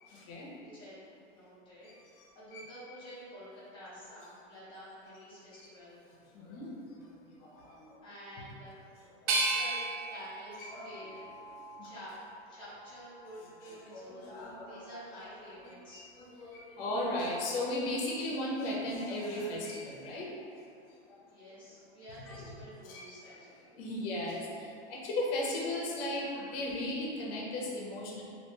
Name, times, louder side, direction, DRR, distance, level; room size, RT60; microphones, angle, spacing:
voice 1, 0.1-0.5 1.8-2.6 6.3-8.0 9.2-9.3 10.6-10.9 11.8-11.9 13.6-15.3 15.5-20.3 21.1-21.2 22.3-22.5 22.8-23.5 23.7-28.2, left 1 dB, 55° left, -4 dB, 0.7 m, -37 dB
voice 2, 0.6-1.9 2.3-6.0 8.0-8.9 9.3-11.3 11.8-12.2 12.5-16.0 21.3-23.7, equal, 15° left, -10 dB, 0.7 m, -49 dB
sound 1, 9.3-12.2 12.7-13.6, right 3 dB, 80° right, 0.5 m, -35 dB
2.5 x 2.2 x 2.9 m, 2.5 s
supercardioid pair, 145°, 34 cm